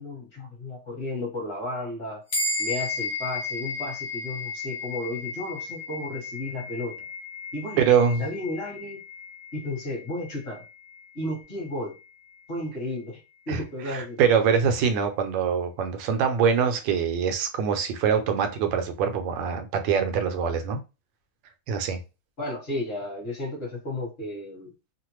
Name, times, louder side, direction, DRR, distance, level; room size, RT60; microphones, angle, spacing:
voice 1, 0.0-2.2 2.6-7.0 7.5-7.9 8.2-9.0 9.5-10.6 11.1-12.0 12.5-13.2 13.5-14.2 22.4-24.7, left 1 dB, 35° left, 1.2 m, -33 dB
sound 1, 2.3-12.0, left 3 dB, 65° left, 0.6 m, -34 dB
voice 2, 7.8-8.2 13.5-13.6 13.9-20.8 21.7-22.0, right 7 dB, 75° right, 1.2 m, -24 dB
3.2 x 2.1 x 3.0 m
omnidirectional pair, 2.1 m